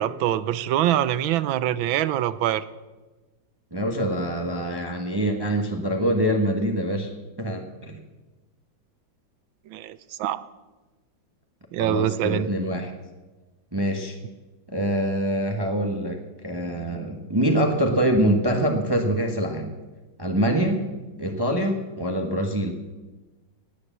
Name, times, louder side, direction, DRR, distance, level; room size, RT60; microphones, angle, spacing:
voice 1, 0.0-2.6 9.7-10.4 11.7-12.5, right 12 dB, 85° right, 15 dB, 1.5 m, -24 dB
voice 2, 3.7-7.1 7.4-8.0 11.8-12.9 13.7-14.2 14.7-19.7 20.2-20.9 21.2-22.7, right 1 dB, 15° right, 3 dB, 1.2 m, -24 dB
17.5 x 9.8 x 7.5 m, 1.2 s
omnidirectional pair, 2.1 m